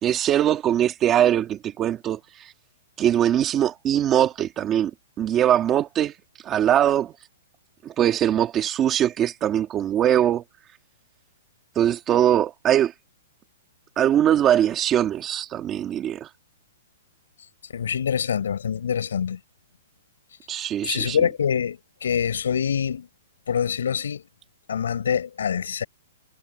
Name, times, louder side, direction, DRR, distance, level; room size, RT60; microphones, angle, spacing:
voice 1, 0.0-2.5 3.0-4.9 5.2-6.1 6.4-7.1 7.8-10.4 11.8-12.9 14.0-16.3 20.5-21.2, right 10 dB, 15° right, 1.8 m, -21 dB
voice 2, 17.7-19.4 20.9-23.1 23.5-24.2 24.7-25.8, left 7 dB, 85° left, 5.1 m, -25 dB
hypercardioid pair, 175°, 0 cm